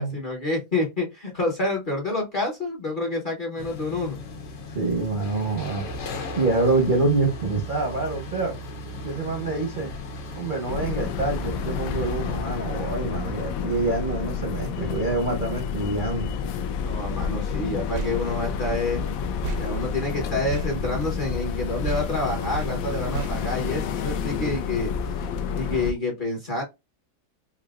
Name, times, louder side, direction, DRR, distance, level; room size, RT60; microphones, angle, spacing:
voice 1, 0.0-4.2 16.8-19.0 19.6-25.2 25.5-26.6, left 2 dB, 35° left, 0.9 m, -28 dB
sound 1, 3.6-12.4, left 2 dB, 90° left, 1.6 m, -37 dB
voice 2, 4.7-5.9 6.4-8.5 9.0-9.9 10.3-16.3, right 3 dB, 40° right, 0.7 m, -26 dB
sound 2, 10.7-25.9, left 6 dB, 70° left, 0.8 m, -29 dB
sound 3, 17.9-21.6 21.8-24.3, right 5 dB, 75° right, 1.2 m, -36 dB
4.8 x 2.7 x 2.3 m
omnidirectional pair, 1.8 m